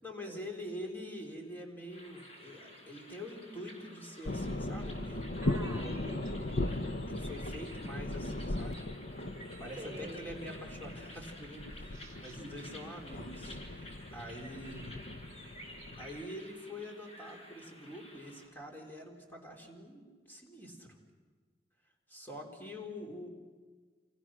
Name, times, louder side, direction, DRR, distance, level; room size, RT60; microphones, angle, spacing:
voice 1, 0.0-5.4 6.7-8.8 9.6-14.9 16.0-21.0 22.1-23.3, left 1 dB, 10° left, 0 dB, 3.9 m, -45 dB
sound 1, 1.9-18.5, left 1 dB, 35° left, 5.0 m, -52 dB
sound 2, 4.2-16.2, left 1 dB, 55° left, 0.9 m, -38 dB
voice 2, 5.4-6.8 9.8-10.3 11.9-12.9, right 1 dB, 15° right, 3 dB, 4.4 m, -48 dB
28.5 x 28.5 x 6.3 m, 1.5 s
head